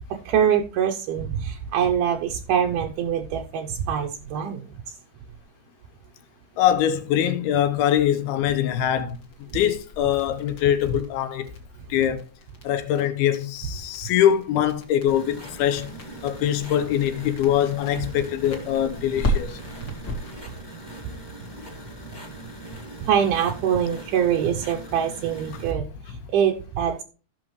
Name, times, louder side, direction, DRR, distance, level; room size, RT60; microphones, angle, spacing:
voice 1, 0.3-5.0 23.0-27.0, right 8 dB, 80° right, 1.9 m, -24 dB
voice 2, 6.6-9.2 9.5-11.5 11.9-12.2 12.6-15.9 16.2-19.6, left 10 dB, 80° left, 2.8 m, -23 dB
sound 1, 9.1-20.4, equal, 40° left, 1.8 m, -35 dB
sound 2, 15.1-25.7, right 1 dB, 10° left, 1.3 m, -41 dB
15.0 x 6.2 x 3.1 m
omnidirectional pair, 4.5 m